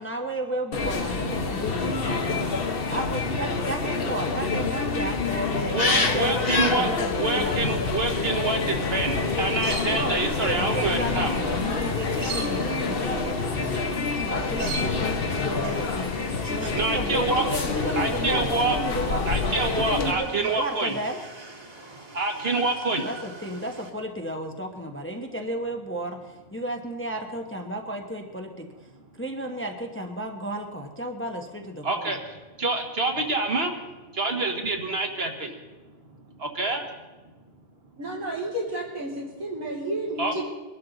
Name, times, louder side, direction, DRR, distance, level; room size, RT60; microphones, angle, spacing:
voice 1, 0.0-2.4 2.9-6.4 6.6-7.5 9.8-13.8 14.1-16.1 16.4-19.2 19.8-21.2 22.6-22.7 23.0-28.7 29.1-32.1, right 1 dB, 10° left, 3 dB, 0.9 m, -33 dB
sound 1, 0.7-20.1, left 4 dB, 45° left, 1.2 m, -27 dB
voice 2, 5.7-6.9 7.2-11.3 16.8-17.4 18.0-18.8 19.3-20.9 22.1-23.1 31.8-32.2 32.6-33.7 34.2-35.5 36.6-36.8 40.2-40.4, right 3 dB, 50° right, 3 dB, 1.7 m, -26 dB
sound 2, 9.1-23.9, right 3 dB, 30° right, 1.8 m, -42 dB
voice 3, 38.0-40.4, right 1 dB, 85° right, -4 dB, 3.8 m, -31 dB
22.0 x 12.0 x 3.9 m, 1.2 s
omnidirectional pair, 1.4 m